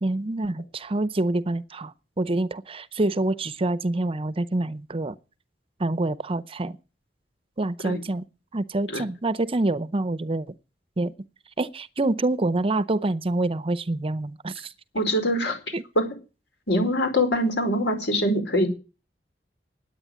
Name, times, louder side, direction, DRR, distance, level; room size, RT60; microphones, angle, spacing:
voice 1, 0.0-5.2 5.8-6.8 7.6-8.2 8.5-10.5 11.0-11.1 11.6-14.7 15.7-15.8, right 2 dB, 30° right, 0.7 m, -26 dB
voice 2, 14.9-15.6 15.9-16.1 16.7-18.7, equal, 90° left, 4.9 m, -23 dB
10.5 x 8.9 x 9.9 m
head